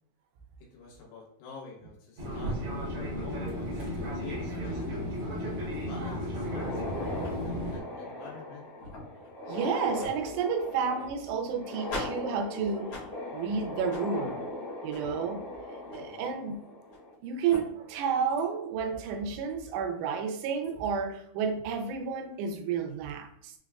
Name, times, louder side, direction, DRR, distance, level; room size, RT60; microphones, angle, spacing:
voice 1, 0.6-5.0 5.7-8.7 16.0-16.3, left 4 dB, 80° left, 3.2 m, -48 dB
Fixed-wing aircraft airplane, 2.2-7.8, equal, 70° right, 1.3 m, -34 dB
sound 1, 6.4-17.1 17.5-17.6 18.4-18.5 19.0-19.1 20.4-20.7, left 1 dB, 55° left, 1.5 m, -39 dB
voice 2, 9.4-16.6 17.2-23.5, right 6 dB, 90° right, 2.7 m, -31 dB
6.6 x 2.2 x 2.3 m
omnidirectional pair, 4.8 m